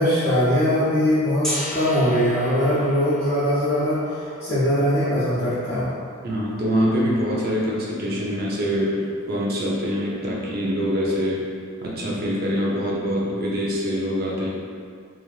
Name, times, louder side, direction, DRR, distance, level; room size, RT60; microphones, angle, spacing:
voice 1, 0.0-4.0 4.4-5.9, equal, 50° left, -17 dB, 0.9 m, -21 dB
Gong, 1.4-7.3, equal, ahead, 0.5 m, -36 dB
voice 2, 6.2-11.5 11.8-14.5, equal, 50° right, -4 dB, 0.5 m, -24 dB
3.1 x 2.4 x 2.4 m, 2.2 s
head